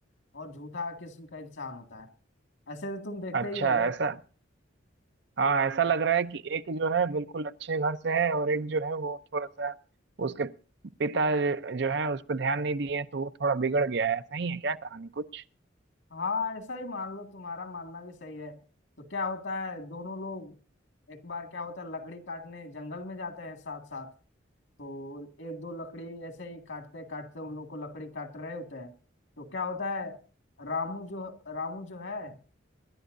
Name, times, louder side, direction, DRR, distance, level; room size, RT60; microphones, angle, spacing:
voice 1, 0.3-2.1 2.7-3.9 16.1-18.6 19.0-20.5 21.1-24.1 24.8-28.9 29.4-30.2 30.6-32.4, left 3 dB, 75° left, 2.1 m, -37 dB
voice 2, 3.3-4.2 5.4-9.8 10.2-10.6 11.0-15.4, right 4 dB, 60° right, 0.6 m, -28 dB
25.0 x 11.5 x 2.6 m
head